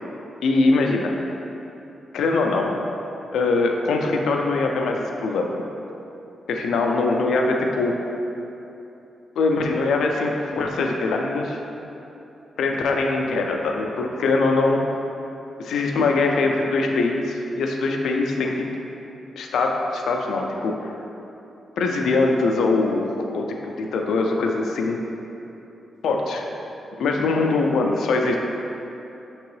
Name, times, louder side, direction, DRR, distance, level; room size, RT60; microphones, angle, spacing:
voice 1, 0.4-1.1 2.1-2.7 3.3-5.5 6.5-8.0 9.4-11.6 12.6-14.8 15.6-18.7 19.4-20.9 21.8-25.0 26.0-26.4 27.0-28.4, left 3 dB, 90° left, 1 dB, 0.3 m, -22 dB
4.5 x 2.9 x 3.1 m, 2.9 s
wide cardioid pair, 145°, 0 cm